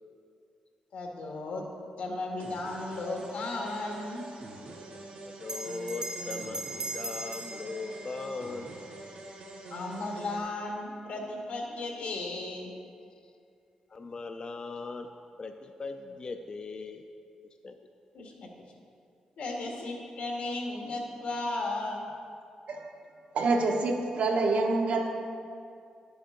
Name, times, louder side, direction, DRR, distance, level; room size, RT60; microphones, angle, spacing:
voice 1, 0.9-1.6 2.0-4.3 9.7-12.7 18.1-18.5 19.4-22.0, left 2 dB, 80° left, 0 dB, 1.7 m, -35 dB
sound 1, 2.4-10.4, right 2 dB, 90° right, 1.7 m, -45 dB
voice 2, 5.2-8.8 13.9-15.1 15.4-17.0 17.6-17.8, left 3 dB, 35° left, 6 dB, 0.4 m, -39 dB
Bell, 5.4-10.3, right 2 dB, 30° right, 0.7 m, -41 dB
voice 3, 23.3-25.1, right 3 dB, 70° right, 2 dB, 1.0 m, -26 dB
10.5 x 7.8 x 3.8 m, 2.4 s
cardioid pair, 105°, 2 cm